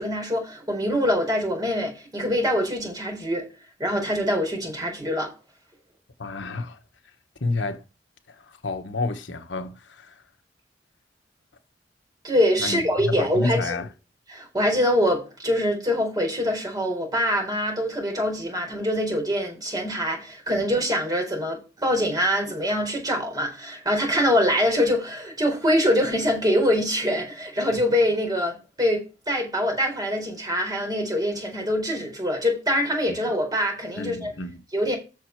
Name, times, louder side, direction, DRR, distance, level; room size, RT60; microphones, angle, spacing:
voice 1, 0.0-3.5 3.8-5.3 12.2-13.7 14.3-34.3 34.7-35.0, equal, 20° right, 4.3 m, -24 dB
voice 2, 6.2-6.8 7.4-7.8 8.3-10.2 12.6-13.9 20.6-20.7 33.1-33.2 34.0-34.6, left 3 dB, 75° left, 1.2 m, -30 dB
8.2 x 6.5 x 4.6 m
head